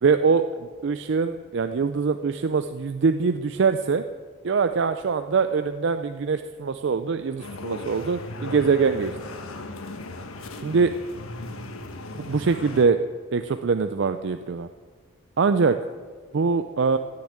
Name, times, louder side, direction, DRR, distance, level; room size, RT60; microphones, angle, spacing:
voice 1, 0.0-4.0 4.4-9.2 10.6-11.0 12.3-13.0 13.3-14.7 15.4-15.8 16.3-17.0, right 5 dB, 55° right, 9 dB, 0.4 m, -23 dB
sound 1, 7.4-12.9, left 2 dB, 80° left, 1.2 m, -37 dB
16.5 x 6.8 x 8.1 m, 1.5 s
head